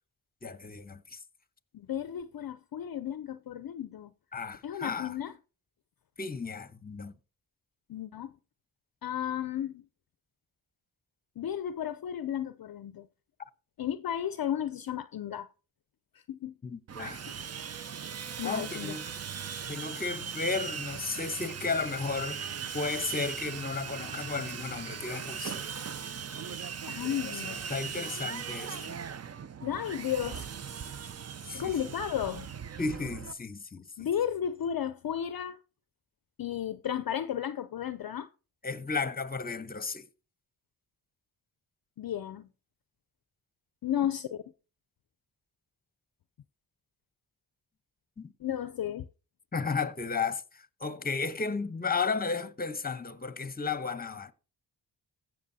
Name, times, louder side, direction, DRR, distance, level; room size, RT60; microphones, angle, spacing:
voice 1, 0.4-1.2 4.3-5.1 6.2-7.1 16.6-17.2 18.4-19.1 19.7-22.5 22.7-25.7 27.0-29.0 31.4-31.8 32.8-33.8 38.6-40.1 48.2-48.3 49.5-54.3, left 4 dB, 20° left, 0.9 m, -34 dB
voice 2, 1.7-4.1 4.6-5.3 7.9-8.3 9.0-9.8 11.4-13.1 13.8-15.5 16.1-16.5 18.4-19.0 26.9-27.6 29.6-30.5 31.5-32.5 34.0-35.6 36.4-38.3 42.0-42.5 43.8-44.4 48.4-49.1, left 10 dB, 50° left, 0.5 m, -33 dB
Sawing, 16.9-33.3, right 7 dB, 35° right, 0.5 m, -39 dB
15.5 x 6.2 x 2.7 m
cardioid pair, 45°, 47 cm